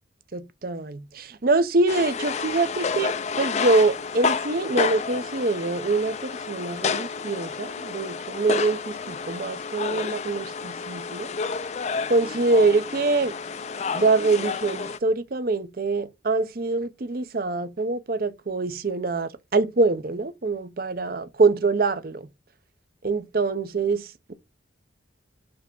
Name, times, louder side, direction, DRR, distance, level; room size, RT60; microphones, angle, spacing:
voice 1, 0.6-11.3 12.1-13.3 13.9-22.3 23.0-24.3, right 3 dB, 50° right, 0.6 m, -24 dB
sound 1, 1.9-15.0, left 5 dB, 35° left, 0.4 m, -30 dB
5.3 x 3.4 x 5.3 m
head